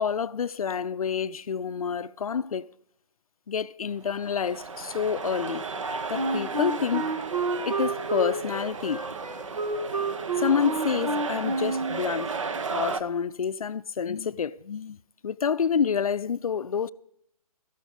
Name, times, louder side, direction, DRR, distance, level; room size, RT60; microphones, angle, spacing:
voice 1, 0.0-2.7 3.5-5.6 6.1-7.1 7.7-9.0 10.4-12.4 12.7-15.0 15.2-16.9, left 7 dB, 65° left, 0.5 m, -28 dB
sound 1, 4.0-13.0, right 4 dB, 55° right, 1.0 m, -34 dB
Wind instrument woodwind instrument, 6.1-12.0, right 2 dB, 80° right, 2.0 m, -29 dB
13.5 x 12.0 x 5.0 m
figure-of-eight pair, 150°, 20 cm